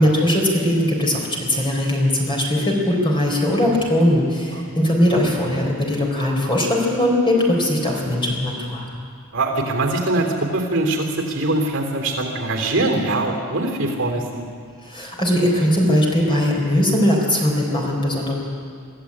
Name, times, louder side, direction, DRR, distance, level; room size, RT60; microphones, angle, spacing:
voice 1, 0.0-8.8 14.9-18.3, left 1 dB, 25° left, -1 dB, 4.4 m, -19 dB
voice 2, 9.3-14.4, right 2 dB, 60° right, 2 dB, 3.2 m, -22 dB
24.0 x 14.5 x 8.7 m, 2.2 s
head